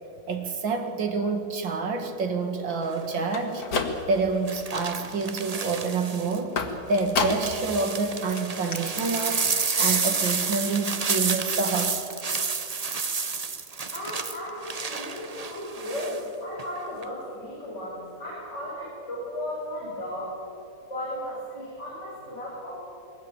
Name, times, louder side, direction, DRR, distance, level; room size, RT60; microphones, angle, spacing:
voice 1, 0.3-3.7 4.1-6.6 6.9-9.5 9.8-12.0, right 4 dB, 85° right, 5 dB, 2.7 m, -27 dB
sound 1, 2.8-3.2 4.5-6.4 6.9-16.2 16.6-17.0, right 4 dB, 35° right, 0.6 m, -30 dB
sound 2, 3.2-4.4 4.8-5.3 6.6-7.7 8.0-8.1 8.4-8.5 8.7-8.8, left 4 dB, 85° left, 2.6 m, -30 dB
voice 2, 13.9-20.4 20.9-22.8, left 1 dB, 35° left, -7 dB, 6.3 m, -35 dB
22.0 x 18.0 x 9.0 m, 2.8 s
omnidirectional pair, 2.0 m